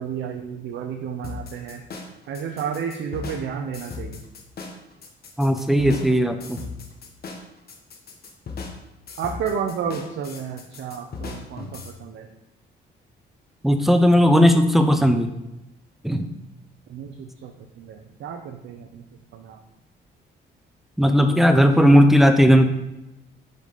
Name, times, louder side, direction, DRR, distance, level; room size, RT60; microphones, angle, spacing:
voice 1, 0.0-1.8 2.3-4.2 9.2-12.3 16.9-19.0 19.3-19.6, right 7 dB, 65° right, 5 dB, 0.6 m, -31 dB
sound 1, 1.2-11.9, left 4 dB, 50° left, 1.0 m, -38 dB
voice 2, 5.4-6.6 13.6-15.3 16.0-16.3 21.0-22.7, equal, ahead, 8 dB, 0.6 m, -16 dB
5.1 x 4.0 x 4.9 m, 0.93 s
cardioid pair, 90°, 20 cm